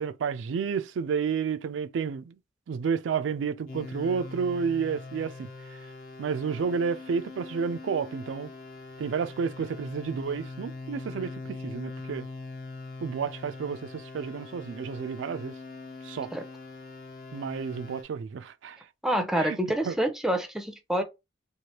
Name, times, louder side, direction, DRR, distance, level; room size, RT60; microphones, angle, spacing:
voice 1, 0.0-2.4 2.7-5.5 6.2-8.5 9.0-12.3 13.0-15.6 16.0-16.3 17.3-18.8 19.4-19.6 19.9-20.0, right 6 dB, 85° right, 0.3 m, -31 dB
sound 1, 3.7-18.0, left 3 dB, 50° left, 0.9 m, -42 dB
voice 2, 19.0-21.0, right 1 dB, ahead, 0.5 m, -27 dB
3.1 x 2.4 x 2.8 m
head